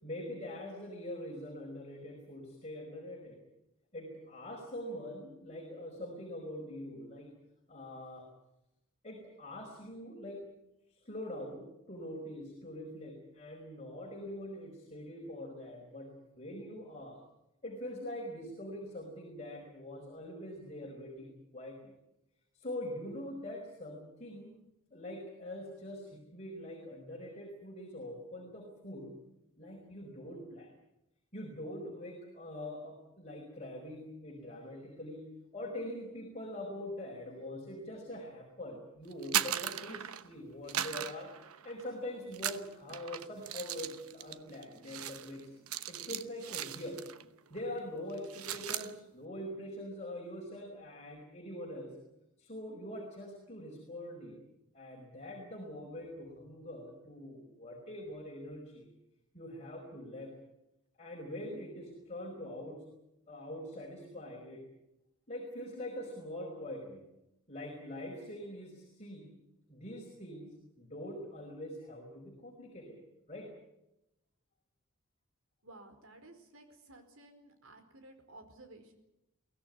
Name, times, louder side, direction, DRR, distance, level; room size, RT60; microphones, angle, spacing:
voice 1, 0.0-3.4 3.9-7.3 7.7-8.3 9.0-10.4 10.9-16.1 16.4-17.2 17.6-21.9 22.5-24.5 24.9-29.1 29.6-30.7 31.3-41.3 41.6-45.5 45.9-47.0 47.5-51.9 52.4-54.4 54.7-58.9 59.3-60.3 61.0-62.8 63.3-64.6 65.3-67.0 67.5-69.3 69.7-73.0 73.3-73.5, left 1 dB, 30° left, 0 dB, 5.1 m, -44 dB
sound 1, 39.1-40.3 40.7-41.9 42.3-47.3 47.5-47.8 48.1-48.9, right 10 dB, 90° right, 1.1 m, -38 dB
voice 2, 75.6-78.9, right 2 dB, 70° right, 7 dB, 4.5 m, -55 dB
23.5 x 17.0 x 9.7 m, 0.88 s
head